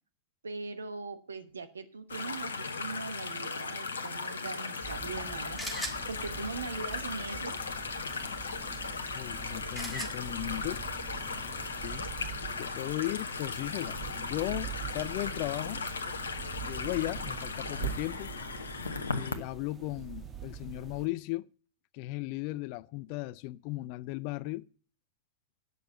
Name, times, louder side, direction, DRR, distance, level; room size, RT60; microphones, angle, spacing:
voice 1, 0.4-5.6 6.1-7.6, right 4 dB, 75° right, 1.1 m, -40 dB
sound 1, 2.1-19.4, left 4 dB, 70° left, 1.0 m, -37 dB
sound 2, 4.8-11.6, right 1 dB, ahead, 2.2 m, -44 dB
sound 3, 4.8-21.1, right 9 dB, 20° right, 1.4 m, -45 dB
voice 2, 9.2-10.8 11.8-12.1 12.6-15.8 16.6-18.3 19.1-21.5 21.9-24.7, left 19 dB, 45° left, 0.4 m, -36 dB
9.4 x 6.7 x 7.4 m
figure-of-eight pair, 90°, 0 cm